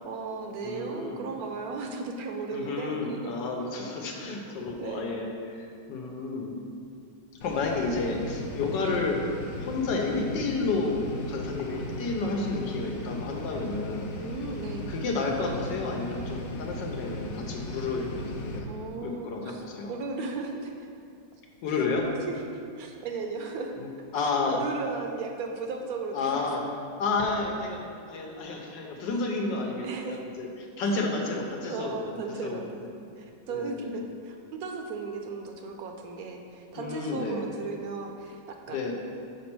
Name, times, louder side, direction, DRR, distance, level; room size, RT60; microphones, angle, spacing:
voice 1, 0.0-3.3 4.8-5.2 8.8-9.1 14.1-14.9 18.7-20.9 21.7-21.8 22.3-23.7 24.5-26.5 29.8-30.2 31.0-31.1 31.7-32.9 33.2-38.4 38.7-38.9, right 4 dB, 70° right, 3 dB, 1.0 m, -36 dB
voice 2, 0.6-1.3 2.5-5.6 5.9-6.5 7.4-9.2 9.6-14.1 14.9-18.7 19.0-19.9 21.6-22.0 23.8-24.6 26.1-26.6 27.0-27.8 28.1-30.5 30.8-32.0 32.4-32.6 33.5-33.9 36.8-37.4 38.7-39.0, left 3 dB, 80° left, 0 dB, 1.5 m, -31 dB
sound 1, 7.4-18.6, left 1 dB, 60° left, 1.0 m, -37 dB
6.0 x 4.3 x 6.0 m, 2.4 s
omnidirectional pair, 1.9 m